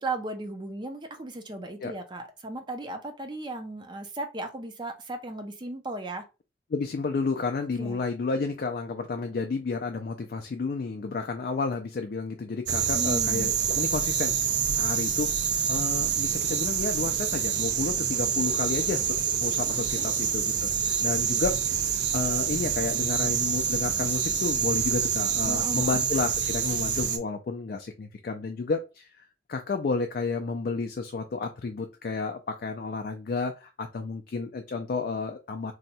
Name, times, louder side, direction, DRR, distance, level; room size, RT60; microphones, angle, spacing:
voice 1, 0.0-6.2 7.8-8.0 12.9-13.5 19.7-20.1 25.5-26.0, right 2 dB, 25° right, 6 dB, 0.4 m, -36 dB
voice 2, 6.7-15.4 15.7-21.8 22.1-29.2 29.5-35.7, left 4 dB, 50° left, 5 dB, 0.3 m, -31 dB
sound 1, 12.7-27.2, right 7 dB, 75° right, 0.5 m, -27 dB
2.7 x 2.2 x 4.0 m, 0.30 s
head